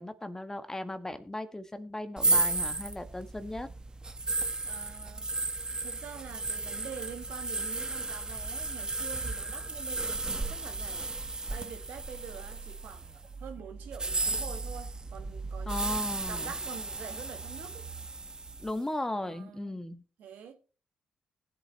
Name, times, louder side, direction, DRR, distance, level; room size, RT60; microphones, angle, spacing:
voice 1, 0.0-3.7 15.7-16.5 18.6-20.0, left 1 dB, 15° left, 1.4 m, -36 dB
sound 1, 2.2-13.1 13.9-18.7, right 2 dB, 25° right, 1.1 m, -34 dB
voice 2, 4.2-5.3 5.8-17.9 19.2-19.8 20.2-20.5, right 7 dB, 70° right, 1.7 m, -46 dB
sound 2, 9.9-18.7, right 4 dB, 55° right, 1.0 m, -44 dB
20.0 x 7.7 x 2.9 m
hypercardioid pair, 45°, 3 cm